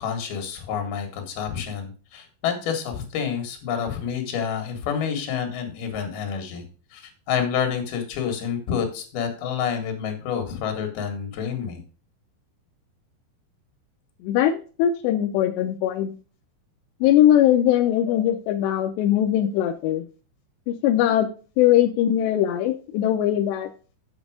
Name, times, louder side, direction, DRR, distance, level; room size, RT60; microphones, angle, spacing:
voice 1, 0.0-6.6 6.9-11.8, left 7 dB, 60° left, 5 dB, 3.3 m, -28 dB
voice 2, 14.2-16.1 17.0-20.0 20.7-21.3 21.6-23.7, left 11 dB, 80° left, 5 dB, 2.5 m, -20 dB
8.0 x 7.3 x 4.9 m, 0.37 s
omnidirectional pair, 5.6 m